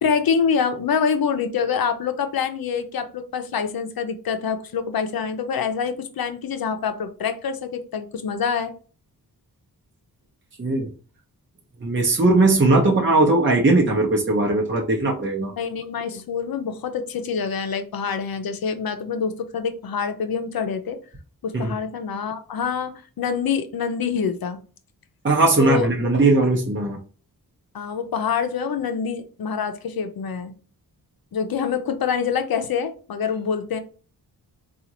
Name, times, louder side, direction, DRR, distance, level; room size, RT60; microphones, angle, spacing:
voice 1, 0.0-8.7 15.4-21.0 21.4-24.6 25.6-26.1 27.7-30.5 31.3-33.8, left 6 dB, 65° left, 0.7 m, -26 dB
voice 2, 11.8-15.5 21.5-21.7 25.2-27.0, right 2 dB, 30° right, 0.8 m, -19 dB
3.7 x 2.5 x 2.9 m
cardioid pair, 60°, 39 cm